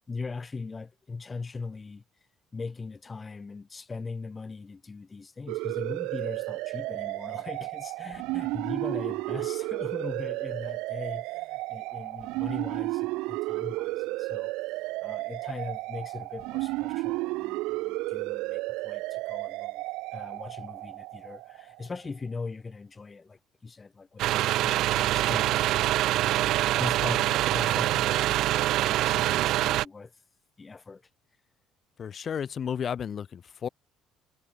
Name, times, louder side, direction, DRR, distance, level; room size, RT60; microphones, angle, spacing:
voice 1, 0.1-19.8 20.1-28.5 28.8-30.3 30.6-31.1, left 4 dB, 20° left, 2.0 m, -40 dB
sound 1, 5.5-21.9, right 22 dB, 85° right, 1.0 m, -33 dB
sound 2, 24.2-29.9, right 15 dB, 65° right, 0.4 m, -25 dB
voice 2, 32.0-33.7, left 8 dB, 40° left, 3.1 m, -33 dB
cardioid pair, 125°, 0 cm